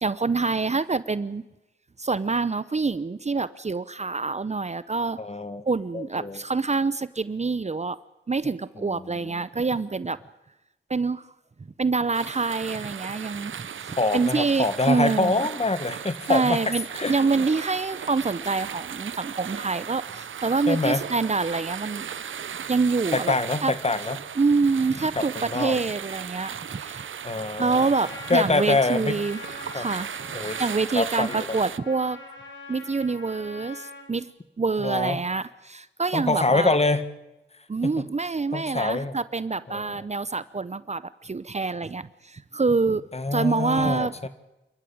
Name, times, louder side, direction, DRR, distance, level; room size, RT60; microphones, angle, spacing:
voice 1, 0.0-1.4 2.0-5.2 5.7-8.0 8.3-10.2 10.9-11.2 11.8-13.7 14.1-15.5 16.3-22.0 22.7-23.3 23.6-23.7 24.4-27.1 27.4-29.4 29.7-30.1 30.6-32.2 32.7-34.3 34.6-36.8 37.7-44.1, right 4 dB, 35° right, 17 dB, 0.7 m, -26 dB
voice 2, 5.2-5.6 5.9-6.4 8.8-9.4 14.0-17.4 20.7-21.0 23.1-24.2 25.2-25.8 27.2-27.9 28.3-29.2 29.7-29.9 30.3-30.6 31.0-31.5 34.8-35.2 36.1-37.0 37.8-37.9 38.5-39.2 39.7-40.0 43.1-44.3, left 3 dB, 30° left, 12 dB, 1.8 m, -25 dB
sound 1, 12.1-31.8, right 8 dB, 80° right, 0.8 m, -37 dB
Trumpet, 27.8-34.1, left 3 dB, 75° left, 5.2 m, -43 dB
28.0 x 12.5 x 8.7 m, 0.98 s
cardioid pair, 55°, 20 cm